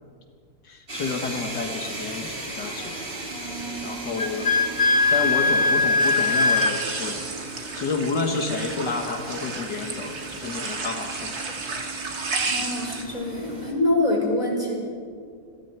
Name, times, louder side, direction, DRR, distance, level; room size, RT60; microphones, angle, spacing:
voice 1, 0.6-3.0 3.8-4.5 5.1-7.2 7.7-11.3, left 4 dB, 80° left, 3 dB, 2.2 m, -30 dB
sound 1, 0.9-13.7, right 2 dB, 30° right, 3.2 m, -37 dB
Wind instrument woodwind instrument, 4.2-6.8, left 3 dB, 45° left, 1.5 m, -20 dB
sound 2, 6.0-13.0, right 4 dB, 60° right, 2.6 m, -32 dB
voice 2, 12.4-14.7, left 2 dB, 20° left, -1 dB, 5.1 m, -25 dB
29.0 x 22.0 x 4.6 m, 2.2 s
omnidirectional pair, 1.8 m